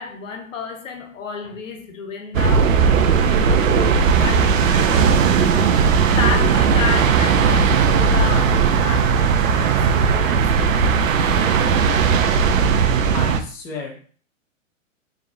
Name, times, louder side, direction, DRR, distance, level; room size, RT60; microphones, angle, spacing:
voice 1, 0.0-5.8 6.2-10.8, left 5 dB, 75° left, 1.3 m, -31 dB
sound 1, 2.3-13.4, right 6 dB, 80° right, 0.7 m, -17 dB
voice 2, 13.1-14.0, left 3 dB, 10° left, 0.4 m, -33 dB
4.8 x 3.2 x 2.7 m
hypercardioid pair, 140°, 40 cm